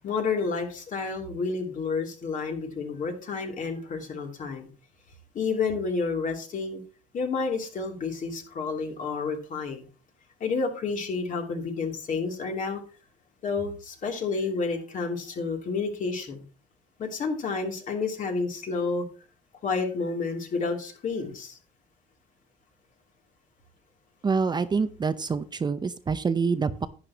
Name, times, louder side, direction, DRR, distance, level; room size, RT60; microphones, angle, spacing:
voice 1, 0.0-4.7 5.3-6.8 7.1-9.8 10.4-12.8 13.4-16.4 17.0-19.0 19.6-21.6, left 4 dB, 50° left, 3.0 m, -30 dB
voice 2, 24.2-26.9, right 5 dB, 25° right, 0.7 m, -26 dB
11.0 x 9.8 x 2.9 m
cardioid pair, 110°, 17 cm